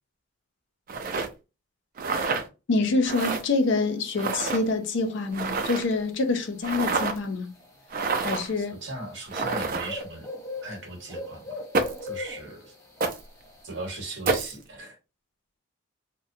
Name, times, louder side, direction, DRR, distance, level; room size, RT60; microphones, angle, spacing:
sound 1, 0.9-1.3 2.0-2.4 3.0-3.4 4.2-4.6 5.3-5.9 6.6-7.2 7.9-8.5 9.3-10.0 11.7-12.1 13.0-13.2 14.2-14.5, right 4 dB, 40° right, 0.4 m, -28 dB
voice 1, 2.7-7.5 8.2-8.7, left 3 dB, 55° left, 0.4 m, -26 dB
sound 2, 3.2-14.2, left 2 dB, 15° left, 0.6 m, -43 dB
voice 2, 8.5-10.3 10.6-11.6 12.0-12.7 13.6-15.0, right 2 dB, 60° right, 1.0 m, -38 dB
2.6 x 2.0 x 2.6 m
head